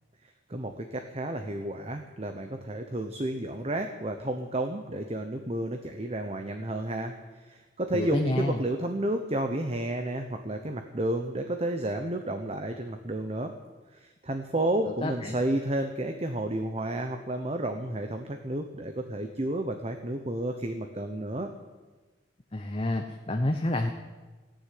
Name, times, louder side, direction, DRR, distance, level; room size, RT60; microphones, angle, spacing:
voice 1, 0.5-7.1 7.5-13.5 14.2-21.5, right 1 dB, 35° right, 6 dB, 0.9 m, -31 dB
voice 2, 7.9-8.6 14.8-15.4 22.5-23.9, left 1 dB, 30° left, 4 dB, 0.9 m, -29 dB
15.0 x 10.5 x 9.4 m, 1.3 s
head